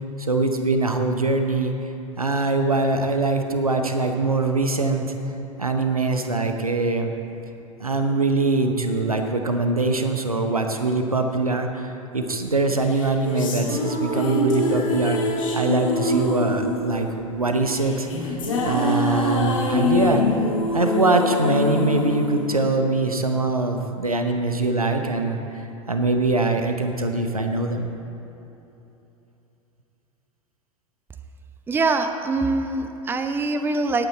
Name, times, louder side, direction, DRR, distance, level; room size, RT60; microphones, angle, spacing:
voice 1, 0.2-1.7 2.2-5.0 5.6-7.1 7.8-18.4 18.6-20.2 20.7-27.9, right 2 dB, 85° right, 5 dB, 0.9 m, -23 dB
sound 1, 12.9-23.3, left 2 dB, 65° left, 2.0 m, -25 dB
voice 2, 31.7-34.1, right 3 dB, 10° right, 8 dB, 0.6 m, -23 dB
18.0 x 8.2 x 4.3 m, 3.0 s
figure-of-eight pair, 90°, 18 cm